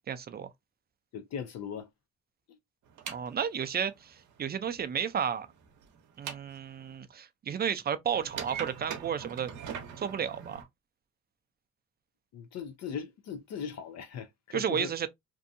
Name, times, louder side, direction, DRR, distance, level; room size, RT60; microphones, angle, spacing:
voice 1, 0.1-0.5 3.1-5.5 6.2-9.5 10.0-10.7 14.5-15.1, right 8 dB, 35° right, 0.4 m, -32 dB
voice 2, 1.1-1.9 12.3-14.9, left 7 dB, 60° left, 0.5 m, -39 dB
sound 1, 2.9-7.0 8.1-10.6, right 8 dB, 75° right, 0.8 m, -42 dB
2.7 x 2.3 x 2.5 m
cardioid pair, 90°, 30 cm